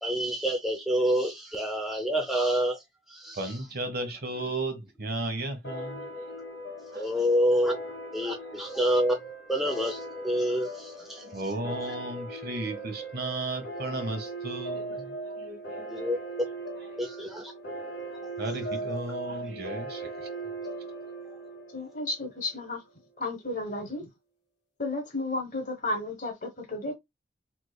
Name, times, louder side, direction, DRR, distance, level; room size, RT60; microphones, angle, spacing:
voice 1, 0.0-2.8 3.1-3.5 6.9-7.8 8.1-9.2 9.5-11.2 15.9-16.5 17.0-17.5, equal, ahead, 0.5 m, -27 dB
voice 2, 3.3-6.1 6.9-7.6 8.3-8.6 11.0-16.2 18.4-20.3, right 2 dB, 60° right, 1.1 m, -35 dB
sound 1, 5.6-22.7, right 2 dB, 90° left, 1.3 m, -39 dB
voice 3, 21.7-22.8 23.2-24.1 24.8-26.9, left 2 dB, 50° left, 1.1 m, -33 dB
3.5 x 3.2 x 2.2 m
head